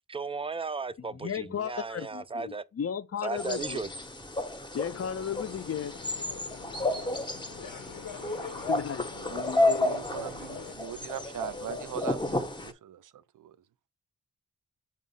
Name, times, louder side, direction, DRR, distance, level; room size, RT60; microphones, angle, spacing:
voice 1, 0.1-2.6 3.2-3.9, right 4 dB, 15° right, 0.4 m, -35 dB
voice 2, 1.0-3.9 4.7-6.0 8.5-10.0, left 8 dB, 50° left, 0.5 m, -35 dB
sound 1, 3.4-12.7, left 2 dB, 15° left, 0.7 m, -32 dB
sound 2, 4.8-10.7, left 7 dB, 85° left, 0.8 m, -45 dB
voice 3, 9.1-13.6, right 10 dB, 75° right, 0.5 m, -41 dB
7.2 x 2.4 x 5.3 m
cardioid pair, 60°, 32 cm